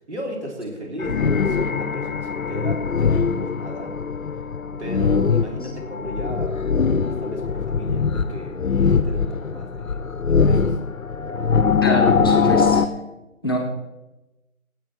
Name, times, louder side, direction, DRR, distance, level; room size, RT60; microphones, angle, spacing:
voice 1, 0.1-3.9 4.8-6.7 7.2-10.0 10.2-10.7, equal, 50° right, 0 dB, 3.4 m, -35 dB
sound 1, 1.0-12.9, left 5 dB, 65° left, 0.8 m, -22 dB
voice 2, 11.8-12.8 13.4-13.6, left 1 dB, 15° left, -2 dB, 1.1 m, -24 dB
16.0 x 8.8 x 4.4 m, 0.99 s
figure-of-eight pair, 175°, 43 cm